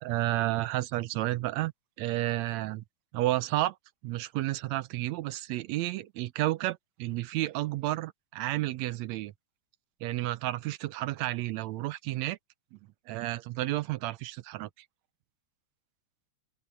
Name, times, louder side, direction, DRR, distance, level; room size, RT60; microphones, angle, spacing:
voice 1, 0.0-1.7 2.0-2.8 3.1-3.8 4.0-9.3 10.0-12.4 13.1-14.7, right 16 dB, 80° right, 1.8 m, -31 dB
open air
omnidirectional pair, 3.4 m